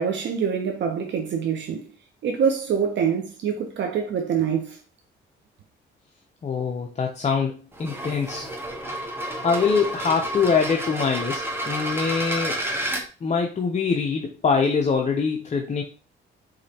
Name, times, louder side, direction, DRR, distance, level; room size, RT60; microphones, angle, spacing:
voice 1, 0.0-1.9 2.2-4.8, right 7 dB, 65° right, 0.8 m, -25 dB
voice 2, 6.4-8.5 9.4-12.6 13.2-15.8, left 5 dB, 35° left, 0.6 m, -24 dB
sound 1, 7.7-13.0, right 1 dB, 10° right, 1.0 m, -30 dB
4.9 x 3.1 x 2.9 m
cardioid pair, 90°, 20 cm